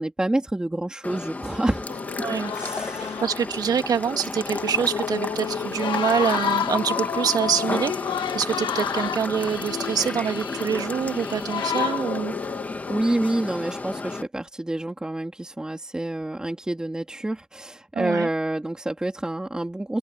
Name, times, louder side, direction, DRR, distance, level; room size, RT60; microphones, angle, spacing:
voice 1, 0.0-2.2 2.5-3.2 12.9-20.0, right 1 dB, 5° right, 3.5 m, -28 dB
sound 1, 1.0-14.2, left 3 dB, 15° left, 1.8 m, -32 dB
sound 2, 1.9-3.6 3.9-4.0 4.4-13.0, left 9 dB, 40° left, 2.2 m, -31 dB
voice 2, 2.2-2.5 3.0-12.3 17.9-18.3, right 7 dB, 35° right, 2.2 m, -26 dB
supercardioid pair, 100°, 11 cm